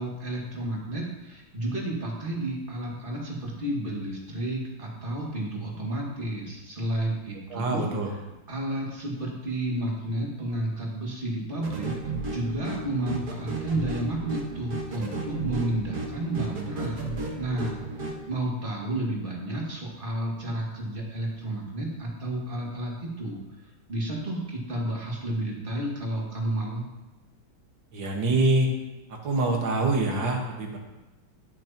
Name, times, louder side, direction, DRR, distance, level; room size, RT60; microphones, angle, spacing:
voice 1, 0.0-7.9 8.5-11.9 12.3-17.0 17.4-23.4 23.9-26.8, right 1 dB, 25° right, -3 dB, 2.2 m, -31 dB
voice 2, 7.5-8.1 27.9-28.7 29.1-30.8, right 2 dB, 65° right, 1 dB, 2.1 m, -25 dB
sound 1, 11.6-18.2, right 3 dB, 50° right, 1.9 m, -34 dB
18.5 x 6.4 x 2.9 m, 1.1 s
omnidirectional pair, 2.3 m